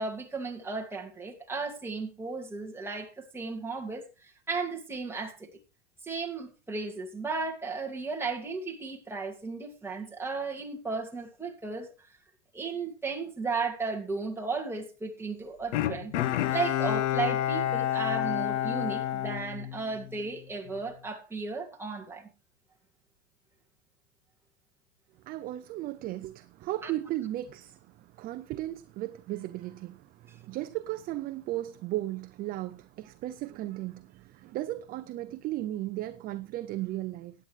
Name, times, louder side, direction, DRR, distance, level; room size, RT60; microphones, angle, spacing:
voice 1, 0.0-4.0 4.5-5.5 6.0-11.9 12.5-16.1 16.5-22.3 26.8-26.9, right 4 dB, 5° right, 2.2 m, -35 dB
Bowed string instrument, 15.7-20.2 20.7-20.8, left 12 dB, 75° left, 1.1 m, -29 dB
voice 2, 25.2-37.3, right 15 dB, 25° right, 0.5 m, -36 dB
16.5 x 9.8 x 3.2 m
supercardioid pair, 140°, 35 cm